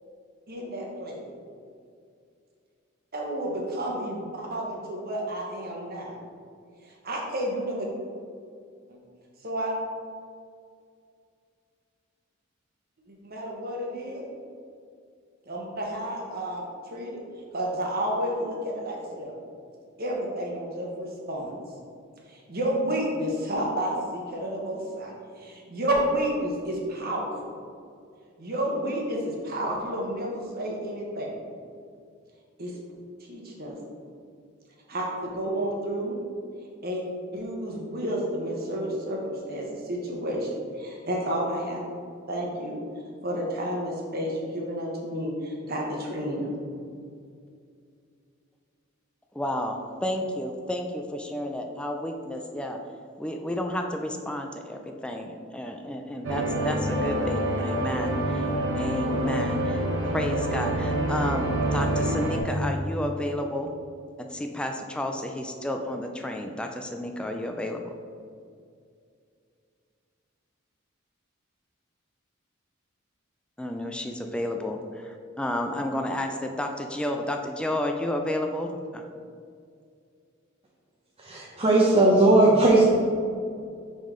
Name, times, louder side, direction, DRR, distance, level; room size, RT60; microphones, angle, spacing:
voice 1, 0.5-1.2 3.1-6.2 6.8-7.9 8.9-9.0 9.4-9.8 13.1-14.2 15.5-17.2 17.5-19.3 20.0-21.5 22.3-27.3 28.4-31.3 32.6-32.7 33.3-33.8 34.9-36.1 36.8-37.0 37.3-41.8 42.3-42.8 43.2-46.5, right 1 dB, 50° right, -1 dB, 1.2 m, -31 dB
voice 2, 49.3-52.8 53.2-58.5 58.8-59.9 60.1-63.7 64.3-67.9 73.6-79.1, left 1 dB, 5° left, 3 dB, 0.3 m, -31 dB
sound 1, 56.2-62.4, right 1 dB, 70° right, 1.1 m, -27 dB
voice 3, 81.2-82.8, right 2 dB, 30° right, -5 dB, 0.7 m, -18 dB
5.4 x 5.2 x 3.7 m, 2.3 s
head